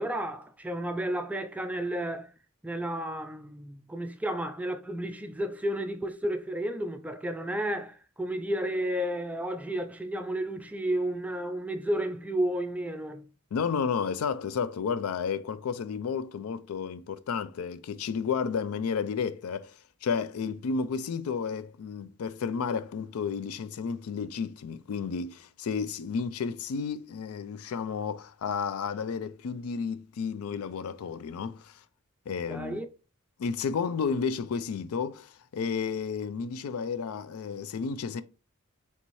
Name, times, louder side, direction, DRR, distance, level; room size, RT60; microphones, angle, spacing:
voice 1, 0.0-2.3 2.6-13.2 32.5-32.9, right 1 dB, 5° right, 0.3 m, -32 dB
voice 2, 13.5-31.8 32.3-32.8 33.4-38.2, left 6 dB, 75° left, 0.4 m, -32 dB
4.1 x 3.5 x 3.0 m
head